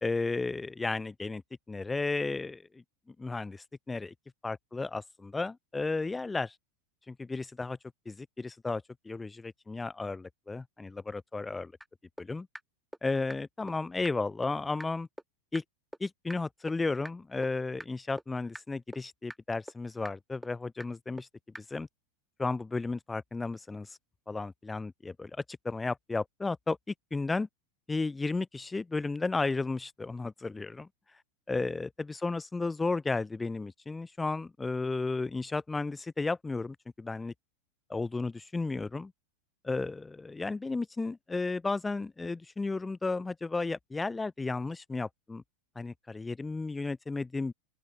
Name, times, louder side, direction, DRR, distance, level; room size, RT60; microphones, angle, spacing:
voice 1, 0.0-1.4 1.7-2.8 3.2-4.1 4.4-6.5 7.1-7.8 8.1-11.7 12.2-12.5 13.0-15.1 15.5-15.6 16.0-21.3 21.6-21.9 22.4-23.9 24.3-26.8 27.1-27.5 27.9-30.9 31.5-37.3 37.9-39.1 39.6-45.4 45.8-47.5, left 3 dB, 10° left, 2.2 m, -33 dB
sound 1, 11.8-11.9 12.2-12.3 12.5-12.6 12.9-13.0 13.3-13.4 13.7-13.8 14.0-14.1 14.4-14.5 14.8-14.9 15.2-15.3 15.5-15.6 15.9-16.0 16.3-16.4 16.7-16.8 17.0-17.1 17.4-17.5 17.8-17.9 18.2-18.3 18.5-18.6 18.9-19.0 19.3-19.4 19.7-19.8 20.0-20.1 20.4-20.5 20.8-20.9 21.2-21.3 21.5-21.6, right 1 dB, 5° right, 2.0 m, -42 dB
open air
hypercardioid pair, 90°, 0 cm